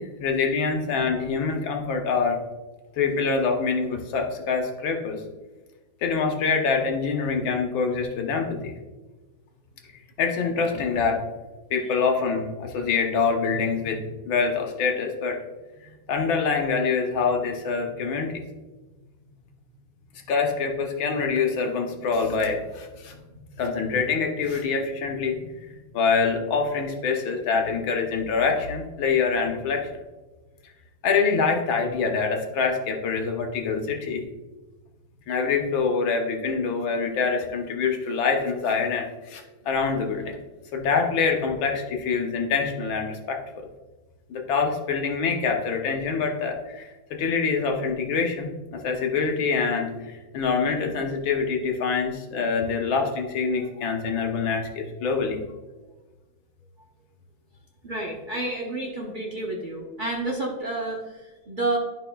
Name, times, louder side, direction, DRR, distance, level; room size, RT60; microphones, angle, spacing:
voice 1, 0.0-2.4 3.0-5.2 6.0-8.7 10.2-11.2 11.7-15.4 16.1-18.4 20.3-25.7 25.9-29.9 31.0-34.2 35.3-40.3 40.7-43.7 44.3-55.4, left 5 dB, 75° left, 3 dB, 1.7 m, -25 dB
voice 2, 57.8-61.8, right 2 dB, 60° right, -2 dB, 0.5 m, -30 dB
11.5 x 5.2 x 2.3 m, 1.2 s
omnidirectional pair, 2.2 m